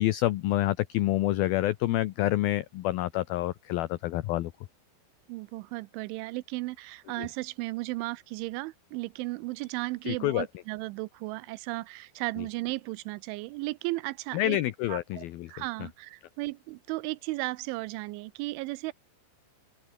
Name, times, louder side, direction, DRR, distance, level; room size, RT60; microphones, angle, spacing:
voice 1, 0.0-4.5 10.1-10.5 14.3-15.5, left 15 dB, 80° left, 2.1 m, -27 dB
voice 2, 5.3-14.6 14.9-18.9, right 21 dB, 85° right, 3.1 m, -35 dB
open air
omnidirectional pair, 5.4 m